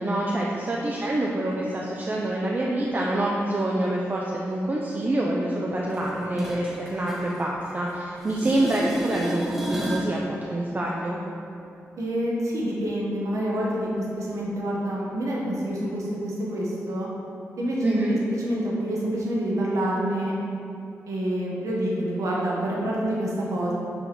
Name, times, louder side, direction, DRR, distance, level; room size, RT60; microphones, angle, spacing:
voice 1, 0.0-11.2 17.8-18.2, right 1 dB, 35° right, -3 dB, 0.6 m, -26 dB
sound 1, 5.9-8.0 8.2-10.1 15.9-16.0, equal, 5° right, 0.8 m, -33 dB
voice 2, 12.0-17.1 17.6-20.3 21.1-23.7, right 1 dB, 75° right, -4 dB, 1.0 m, -27 dB
6.2 x 3.0 x 5.1 m, 2.6 s
cardioid pair, 65°, 5 cm